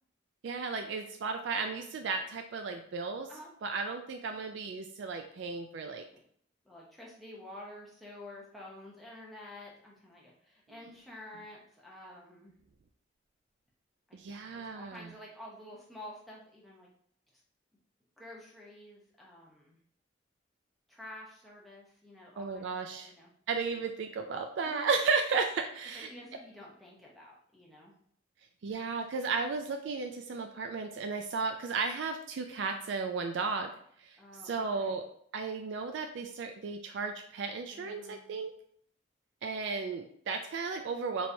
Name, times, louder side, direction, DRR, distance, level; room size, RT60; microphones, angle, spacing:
voice 1, 0.4-3.3 3.6-6.0 14.1-15.1 22.4-23.1 23.5-26.1 28.6-33.7 34.0-34.2 34.4-35.0 35.3-38.5 39.4-41.3, right 4 dB, 70° right, 5 dB, 0.3 m, -34 dB
voice 2, 6.6-12.6 14.1-16.9 17.3-17.4 18.2-19.8 20.9-22.7 23.0-23.3 24.6-24.9 25.9-27.9 34.2-35.0 37.7-38.4, left 1 dB, ahead, -5 dB, 0.8 m, -50 dB
4.4 x 3.1 x 2.6 m, 0.63 s
head